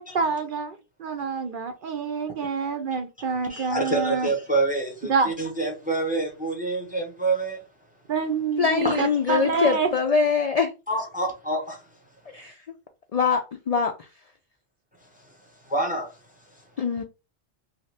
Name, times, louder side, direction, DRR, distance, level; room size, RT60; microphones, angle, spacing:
voice 1, 0.0-4.3 5.1-5.3 8.1-9.9, right 5 dB, 55° right, 0.7 m, -27 dB
voice 2, 3.2-7.6 8.8-9.0 9.3-9.4 10.9-11.8 15.7-16.1, right 2 dB, 10° right, 0.7 m, -27 dB
voice 3, 8.6-10.7 12.3-12.6 13.1-14.1 16.8-17.0, left 5 dB, 70° left, 0.3 m, -23 dB
2.8 x 2.8 x 3.2 m
omnidirectional pair, 1.2 m